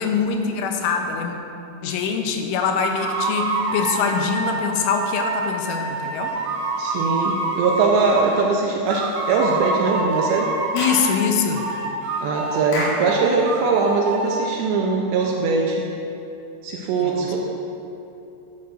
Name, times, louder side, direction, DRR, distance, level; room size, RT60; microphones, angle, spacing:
voice 1, 0.0-1.4 1.8-6.4 10.7-11.7 17.0-17.3, left 6 dB, 85° left, 4 dB, 3.2 m, -23 dB
sound 1, 2.8-8.5 8.9-11.2 11.5-14.4, right 3 dB, 70° right, 3.4 m, -27 dB
voice 2, 6.8-10.5 12.2-15.9 16.6-17.5, right 4 dB, 85° right, -1 dB, 2.6 m, -21 dB
Clapping / Chirp tweet, 10.8-11.1 12.7-13.1, left 1 dB, 60° left, 2.6 m, -27 dB
12.0 x 11.0 x 2.6 m, 2.8 s
omnidirectional pair, 5.6 m